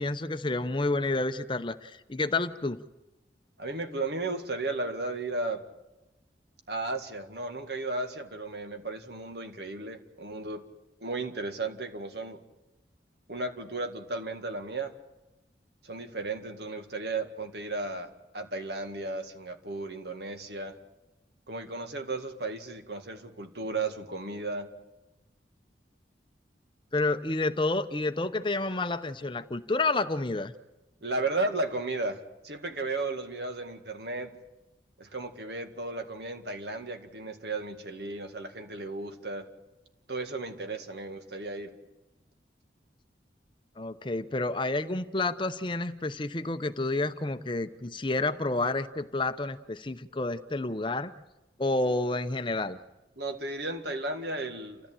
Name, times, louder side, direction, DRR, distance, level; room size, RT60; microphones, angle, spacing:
voice 1, 0.0-2.8 26.9-30.5 43.8-51.1 51.6-52.8, left 2 dB, 25° left, 11 dB, 0.7 m, -29 dB
voice 2, 3.6-5.6 6.7-10.6 11.0-12.4 13.3-14.9 15.8-20.7 21.5-24.7 31.0-34.3 35.0-39.4 40.1-41.7 53.2-54.8, right 2 dB, 70° right, 6 dB, 2.0 m, -34 dB
29.0 x 14.0 x 8.9 m, 1.0 s
head